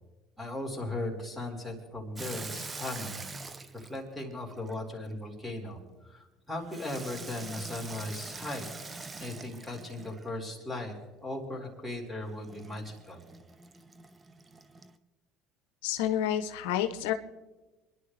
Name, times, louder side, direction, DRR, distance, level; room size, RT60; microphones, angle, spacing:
voice 1, 0.4-3.2 3.7-5.8 6.1-8.7 9.2-10.9 11.2-13.2, left 2 dB, 5° right, 0 dB, 4.2 m, -37 dB
Water tap faucet / Sink (filling or washing), 2.1-5.1 6.7-10.4 12.4-15.0, right 3 dB, 25° right, 0.9 m, -44 dB
voice 2, 15.8-17.1, left 11 dB, 85° left, 9 dB, 0.8 m, -29 dB
27.5 x 11.0 x 3.3 m, 1.1 s
supercardioid pair, 85°, 0 cm